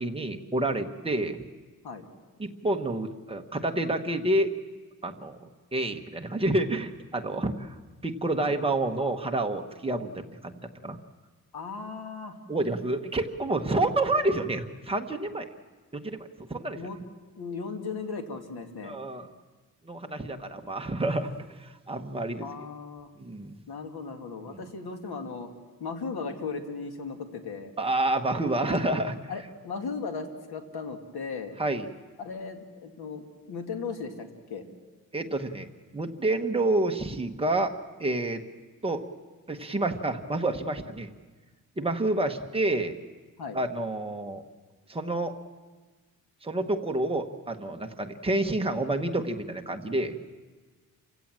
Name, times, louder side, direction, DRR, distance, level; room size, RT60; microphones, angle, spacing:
voice 1, 0.0-1.4 2.4-4.5 5.0-7.7 8.0-11.0 12.5-15.4 15.9-16.8 18.8-19.3 19.8-21.3 21.6-22.5 23.2-23.5 24.5-24.6 27.8-29.2 31.6-31.9 35.1-35.7 35.9-37.7 38.0-38.4 38.8-39.0 39.5-41.1 41.8-43.0 43.5-44.4 44.9-45.3 46.4-50.2, right 2 dB, 15° right, 4 dB, 1.0 m, -29 dB
voice 2, 11.5-12.4 16.7-17.0 17.4-19.0 22.4-23.1 23.7-25.5 25.8-27.7 29.3-31.5 32.2-34.6 43.4-43.6, left 4 dB, 85° left, 5 dB, 2.3 m, -37 dB
28.0 x 16.5 x 7.5 m, 1.4 s
wide cardioid pair, 175°, 37 cm